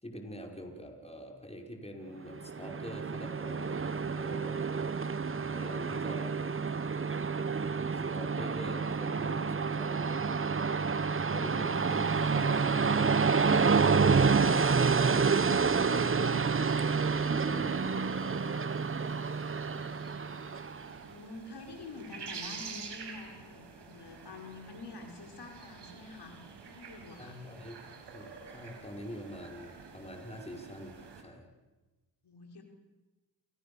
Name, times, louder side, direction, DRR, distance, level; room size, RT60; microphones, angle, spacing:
voice 1, 0.0-4.6 5.5-6.4 7.9-10.6 11.2-13.5 13.9-16.7 17.3-17.9 18.2-18.6 18.9-19.1 19.5-19.8 27.2-27.8 28.1-31.5, equal, 15° left, 2 dB, 5.6 m, -46 dB
Train, 2.3-20.9, right 5 dB, 30° right, 1.1 m, -29 dB
sound 1, 11.7-31.2, right 5 dB, 75° right, 6.2 m, -49 dB
voice 2, 20.9-27.4 32.2-32.6, left 3 dB, 70° left, 3 dB, 5.5 m, -47 dB
28.5 x 26.5 x 7.2 m, 1.2 s
cardioid pair, 80°, 42 cm